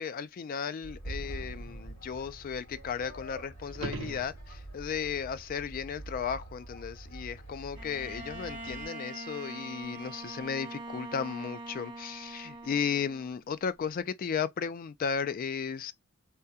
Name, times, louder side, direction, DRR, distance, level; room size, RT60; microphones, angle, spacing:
voice 1, 0.0-15.9, left 6 dB, 45° left, 0.3 m, -35 dB
sound 1, 0.8-8.9, right 2 dB, 65° left, 2.1 m, -45 dB
sound 2, 3.7-4.9 9.8-9.9, right 2 dB, 70° right, 0.6 m, -40 dB
Bowed string instrument, 7.7-13.5, right 2 dB, 25° right, 1.0 m, -43 dB
3.5 x 2.2 x 2.7 m
head